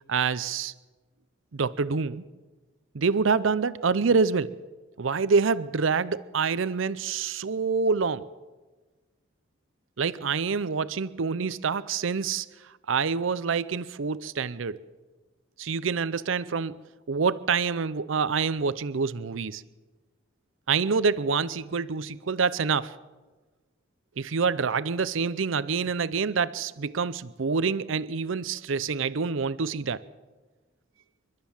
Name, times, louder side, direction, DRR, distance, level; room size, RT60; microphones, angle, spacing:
voice 1, 0.1-0.7 1.5-2.2 2.9-4.6 5.0-8.3 10.0-12.5 12.9-14.8 15.6-16.8 17.1-19.6 20.7-22.9 24.2-30.0, right 5 dB, 80° right, 16 dB, 0.6 m, -26 dB
29.5 x 12.5 x 7.2 m, 1.3 s
head